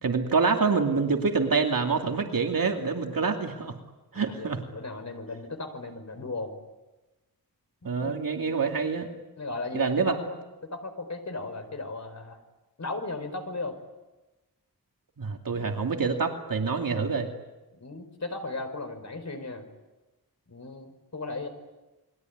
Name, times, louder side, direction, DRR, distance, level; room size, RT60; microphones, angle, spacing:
voice 1, 0.0-3.7 4.1-4.6 7.8-9.1 9.7-10.2 15.2-17.3, right 4 dB, 60° right, 3 dB, 2.6 m, -26 dB
voice 2, 4.1-6.6 7.8-8.1 9.4-10.4 10.7-12.4 12.8-13.7 17.8-19.7 20.5-21.5, left 3 dB, 45° left, 7 dB, 4.6 m, -36 dB
29.0 x 22.0 x 9.4 m, 1.1 s
wide cardioid pair, 130°, 38 cm